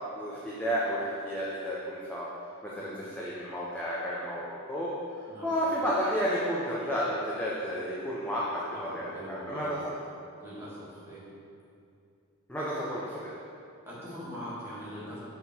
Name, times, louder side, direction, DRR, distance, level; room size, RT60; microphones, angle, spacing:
voice 1, 0.0-2.3 2.6-9.8 12.5-13.3, equal, 5° left, -7 dB, 0.6 m, -32 dB
voice 2, 5.3-5.6 8.7-9.9 10.4-11.3 13.8-15.2, equal, 10° right, -9 dB, 1.7 m, -42 dB
6.8 x 3.7 x 5.9 m, 2.5 s
head